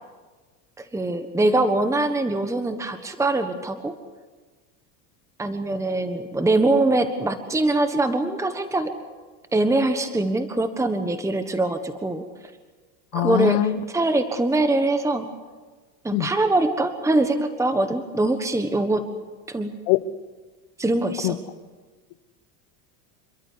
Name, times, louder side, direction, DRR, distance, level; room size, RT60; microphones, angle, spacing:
voice 1, 0.8-3.9 5.4-8.9 9.5-12.2 13.1-15.2 16.0-19.0 19.5-19.7 20.8-21.4, right 2 dB, 5° right, 9 dB, 1.4 m, -23 dB
voice 2, 13.1-13.8 16.1-16.3 19.9-20.0 21.2-21.4, left 15 dB, 65° left, 15 dB, 1.2 m, -21 dB
28.0 x 12.5 x 9.7 m, 1.3 s
supercardioid pair, 115°, 43 cm